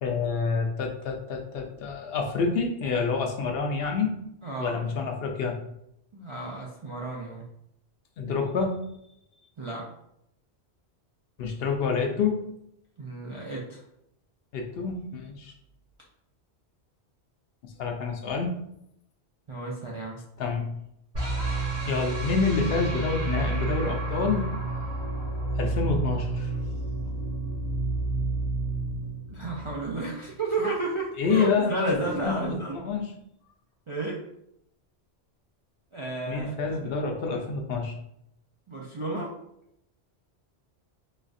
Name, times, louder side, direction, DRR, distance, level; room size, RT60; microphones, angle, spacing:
voice 1, 0.0-4.2 4.6-5.6 8.2-8.8 11.4-12.4 14.5-15.5 17.6-18.6 20.4-20.7 21.9-24.5 25.6-26.5 31.2-32.0 32.2-33.1 36.3-37.9, left 5 dB, 70° left, 3 dB, 0.7 m, -28 dB
voice 2, 4.4-4.8 6.1-7.4 9.6-9.9 13.0-13.8 19.5-20.2 29.3-32.8 33.9-34.2 35.9-37.1 38.7-39.3, right 3 dB, 50° right, -4 dB, 0.4 m, -32 dB
sound 1, 21.1-30.2, right 2 dB, 75° right, 2.0 m, -30 dB
4.0 x 2.3 x 2.5 m, 0.79 s
omnidirectional pair, 1.1 m